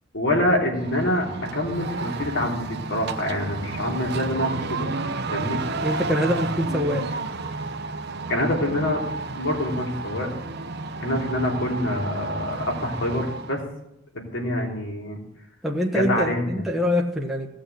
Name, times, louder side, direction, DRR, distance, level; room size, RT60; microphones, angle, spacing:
voice 1, 0.1-1.3 1.5-5.0 5.3-5.6 8.3-9.0 9.3-10.3 11.0-13.6 14.1-15.2 15.9-16.5, left 1 dB, 65° left, -1 dB, 3.4 m, -26 dB
sound 1, 0.8-13.6, right 3 dB, 55° right, 0.9 m, -31 dB
voice 2, 5.8-7.0 15.6-17.5, left 1 dB, ahead, -2 dB, 1.2 m, -24 dB
16.5 x 6.3 x 8.2 m, 0.82 s
head